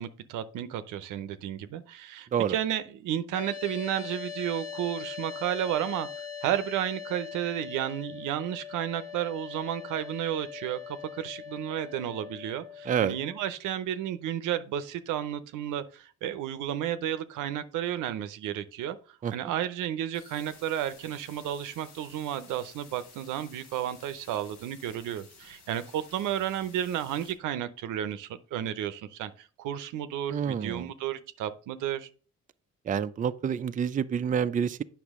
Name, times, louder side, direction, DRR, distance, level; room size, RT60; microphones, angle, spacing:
voice 1, 0.0-6.1 6.4-19.0 19.3-32.1, right 11 dB, 90° right, 0.7 m, -32 dB
sound 1, 3.3-13.4, left 7 dB, 50° left, 1.4 m, -41 dB
sound 2, 20.1-27.3, left 4 dB, 80° left, 3.3 m, -54 dB
voice 2, 30.3-30.9 32.8-34.8, right 8 dB, 25° right, 0.4 m, -28 dB
8.1 x 5.9 x 3.6 m
cardioid pair, 90°, 30 cm